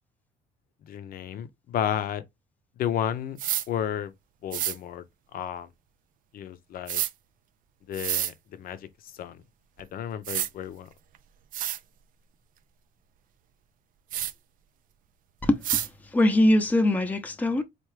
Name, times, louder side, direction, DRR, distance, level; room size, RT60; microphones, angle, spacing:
voice 1, 0.8-2.2 2.8-3.4 3.7-4.1 4.4-5.0 5.3-5.7 6.3-7.0 7.9-9.4 9.8-10.9, left 10 dB, 60° left, 0.6 m, -32 dB
sound 1, 3.4-3.7 4.5-4.8 6.9-7.1 7.9-8.3 9.8-9.9 10.2-10.5 11.1-11.2 11.5-11.8 14.1-14.3 15.6-15.9, right 11 dB, 55° right, 0.4 m, -28 dB
voice 2, 15.4-17.6, left 1 dB, 10° left, 0.7 m, -23 dB
4.6 x 2.5 x 3.2 m
cardioid pair, 110°, 17 cm